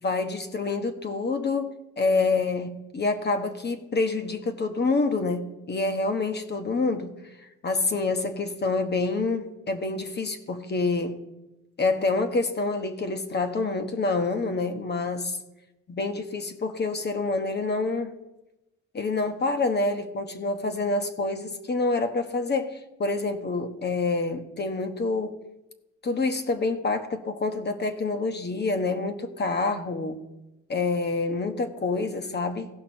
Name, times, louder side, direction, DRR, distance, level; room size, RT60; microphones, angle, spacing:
voice 1, 0.0-7.1 7.6-11.2 11.8-15.3 15.9-18.2 18.9-25.4 26.0-30.2 30.7-32.7, left 3 dB, 35° left, 1.2 m, -27 dB
16.5 x 5.8 x 4.4 m
cardioid pair, 90°, 30 cm